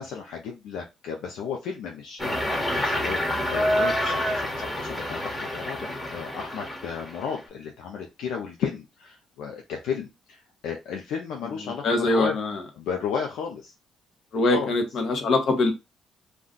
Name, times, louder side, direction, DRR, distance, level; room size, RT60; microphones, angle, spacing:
voice 1, 0.0-12.4 12.7-13.7 14.4-14.8, left 6 dB, 85° left, 0.5 m, -34 dB
sound 1, 2.2-7.4, equal, 15° left, 1.1 m, -28 dB
voice 2, 11.8-12.6 14.3-15.7, left 2 dB, 65° left, 1.0 m, -23 dB
2.4 x 2.2 x 3.7 m
cardioid pair, 90°, 0 cm